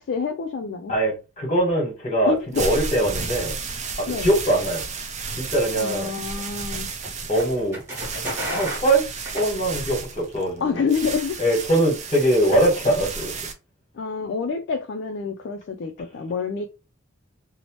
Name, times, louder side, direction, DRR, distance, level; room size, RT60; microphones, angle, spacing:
voice 1, 0.0-0.9 2.3-2.6 4.1-4.3 5.8-6.9 10.6-11.4 13.9-16.7, left 5 dB, 60° left, 0.3 m, -27 dB
voice 2, 0.9-3.6 4.0-4.8 5.3-6.1 7.3-7.8 8.5-9.1 9.3-10.8 11.4-13.3, right 1 dB, 35° left, 1.2 m, -22 dB
sound 1, 2.3-13.5, right 4 dB, 35° right, 0.4 m, -33 dB
sound 2, 5.7-10.1, equal, 15° right, 1.2 m, -34 dB
2.8 x 2.0 x 2.9 m
head